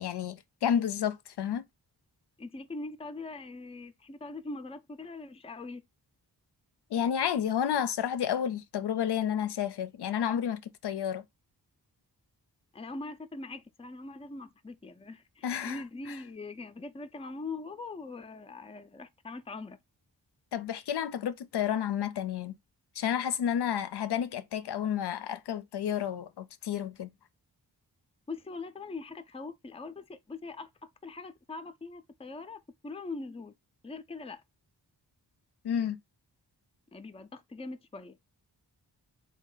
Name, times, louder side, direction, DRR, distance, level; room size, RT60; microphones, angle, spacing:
voice 1, 0.0-1.6 6.9-11.2 15.4-15.8 20.5-22.6 23.0-27.1 35.6-36.0, left 9 dB, 70° left, 0.5 m, -31 dB
voice 2, 2.4-5.8 12.7-19.8 28.3-30.7 31.0-33.5 33.8-34.4 36.9-38.3, left 3 dB, 15° left, 0.5 m, -42 dB
3.5 x 2.3 x 3.8 m
cardioid pair, 50°, 42 cm